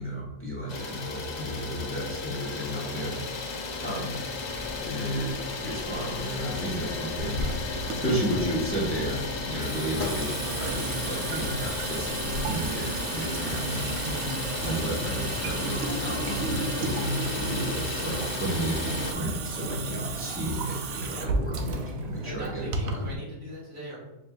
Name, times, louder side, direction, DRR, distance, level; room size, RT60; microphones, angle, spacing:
voice 1, 0.0-3.6 3.8-4.2 4.8-5.3 5.6-13.9 14.6-23.1, equal, 10° left, -5 dB, 0.8 m, -33 dB
Idling, 0.7-19.1, left 3 dB, 55° left, 0.5 m, -34 dB
voice 2, 2.8-3.3 14.0-14.5 21.1-21.3 22.2-24.0, right 1 dB, 50° right, -6 dB, 1.9 m, -40 dB
sound 1, 4.5-12.7, left 2 dB, 75° left, 1.0 m, -42 dB
Water tap faucet / Sink (filling or washing) / Drip, 7.2-23.1, right 3 dB, 85° right, 1.0 m, -33 dB
6.1 x 2.5 x 2.4 m, 0.98 s
omnidirectional pair, 1.4 m